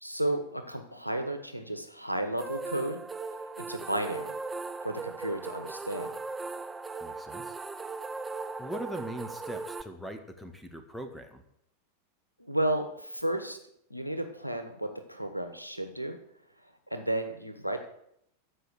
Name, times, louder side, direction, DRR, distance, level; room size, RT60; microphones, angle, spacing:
voice 1, 0.0-3.0 3.6-4.3 4.8-6.1 12.4-13.6 13.9-16.2 16.9-17.8, right 1 dB, 90° left, 7 dB, 1.3 m, -33 dB
sound 1, 2.4-9.8, right 4 dB, 15° right, 0.6 m, -38 dB
voice 2, 7.0-7.6 8.6-11.4, equal, 5° left, 7 dB, 1.6 m, -40 dB
14.0 x 5.4 x 8.4 m, 0.73 s
figure-of-eight pair, 90°, 0 cm